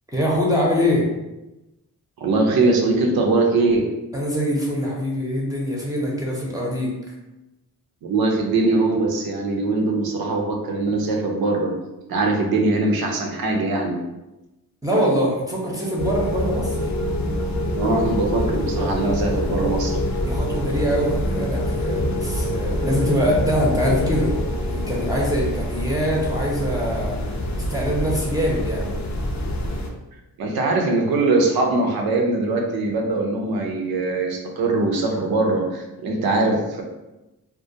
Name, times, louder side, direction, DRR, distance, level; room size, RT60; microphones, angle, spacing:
voice 1, 0.1-1.1 4.1-6.9 14.8-16.8 20.2-24.3 24.7-27.2 27.5-28.9, equal, 10° right, -3 dB, 0.6 m, -23 dB
voice 2, 2.2-3.8 8.0-11.7 12.1-14.0 17.7-20.0 30.4-36.8, right 3 dB, 80° right, 1 dB, 0.6 m, -21 dB
sound 1, 16.0-29.9, left 1 dB, 50° left, 0.5 m, -25 dB
2.2 x 2.2 x 2.7 m, 1.0 s
cardioid pair, 55°, 36 cm